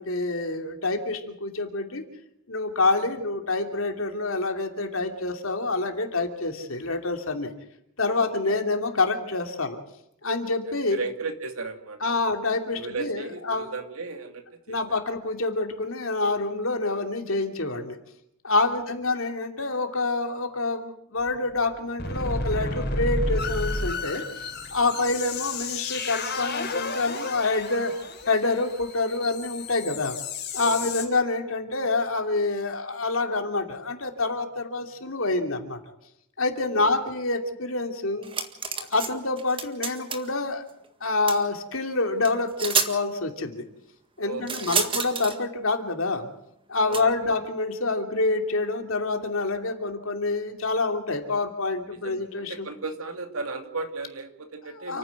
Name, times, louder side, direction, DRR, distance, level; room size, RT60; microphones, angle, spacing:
voice 1, 0.0-2.0 2.5-7.5 8.0-9.8 10.2-11.0 12.0-13.7 14.7-18.0 18.4-24.2 24.7-27.9 28.3-30.2 30.5-35.8 36.4-38.3 38.9-40.6 41.0-43.7 44.2-46.3 46.7-52.7 54.9-55.0, left 3 dB, 65° left, 5 dB, 2.8 m, -27 dB
voice 2, 8.1-8.6 10.5-10.6 10.8-12.0 12.6-15.0 30.6-31.1 36.7-36.9 44.2-44.9 46.8-47.1 51.9-55.0, right 3 dB, 75° right, 6 dB, 2.7 m, -36 dB
sound 1, 21.3-21.4 21.7-21.8 22.0-31.0, left 2 dB, 45° left, 4.3 m, -31 dB
sound 2, 38.2-39.1 39.4-40.3 41.3-41.4 42.2-42.3 42.6-42.9 44.5-45.4 46.9-47.0, right 5 dB, 25° right, 1.7 m, -28 dB
29.5 x 9.9 x 9.5 m, 0.77 s
head